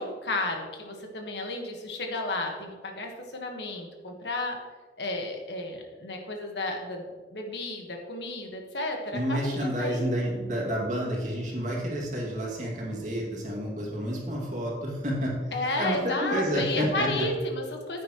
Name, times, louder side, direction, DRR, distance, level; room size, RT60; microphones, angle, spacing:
voice 1, 0.0-4.6 5.0-10.1 15.5-18.0, left 2 dB, 80° left, 2 dB, 1.5 m, -32 dB
voice 2, 9.1-15.3 15.8-17.3, equal, 45° right, -3 dB, 2.4 m, -29 dB
10.0 x 8.6 x 3.1 m, 1.4 s
head